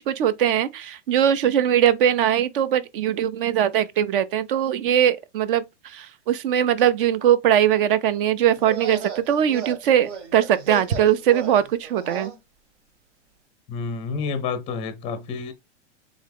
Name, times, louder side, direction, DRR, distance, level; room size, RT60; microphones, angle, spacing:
voice 1, 0.1-5.6 5.9-12.3, right 10 dB, 45° right, 0.6 m, -21 dB
sound 1, 8.5-12.4, right 6 dB, 75° right, 1.5 m, -35 dB
voice 2, 13.7-15.5, left 5 dB, 15° left, 0.5 m, -29 dB
3.7 x 3.6 x 3.5 m
hypercardioid pair, 150°, 36 cm